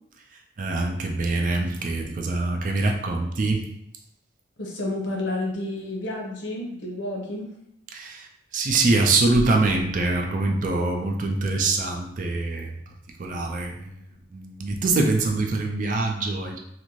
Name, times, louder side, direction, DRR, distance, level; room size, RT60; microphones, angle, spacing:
voice 1, 0.6-3.6 7.9-8.3 8.5-12.8 13.2-16.6, right 3 dB, 45° right, 2 dB, 0.4 m, -24 dB
voice 2, 4.6-7.5, left 1 dB, 70° left, -1 dB, 0.7 m, -30 dB
2.5 x 2.5 x 3.0 m, 0.77 s
head